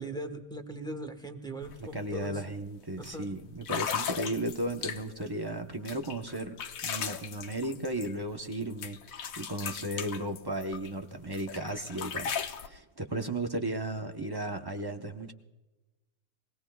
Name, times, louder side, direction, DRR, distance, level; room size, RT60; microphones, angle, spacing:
voice 1, 0.0-2.4 3.0-3.3, right 1 dB, 5° left, 6 dB, 1.0 m, -39 dB
sound 1, 1.6-1.8 2.1-2.4 3.0-3.1 3.6-5.3 5.9-8.6 8.8-10.9 11.3-12.7, left 7 dB, 70° left, 1.2 m, -37 dB
voice 2, 1.8-6.6 6.8-9.0 9.4-12.3 12.6-15.3, right 1 dB, 25° right, 5 dB, 0.6 m, -35 dB
23.0 x 17.5 x 2.3 m, 1.1 s
omnidirectional pair, 1.6 m